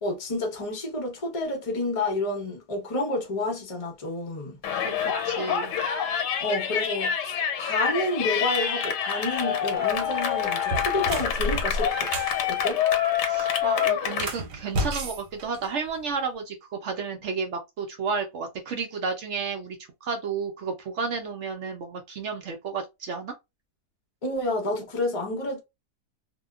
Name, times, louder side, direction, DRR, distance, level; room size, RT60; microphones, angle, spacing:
voice 1, 0.0-4.6 6.4-12.1 12.5-12.8 24.2-25.6, left 2 dB, 30° left, 0.6 m, -29 dB
Yell, 4.6-14.3, left 8 dB, 80° left, 1.3 m, -26 dB
voice 2, 4.8-5.7 13.2-23.3, right 5 dB, 75° right, 0.6 m, -32 dB
sound 1, 9.8-10.0 10.6-12.4 14.1-16.1, right 1 dB, 90° right, 1.2 m, -31 dB
2.7 x 2.2 x 2.3 m
omnidirectional pair, 1.8 m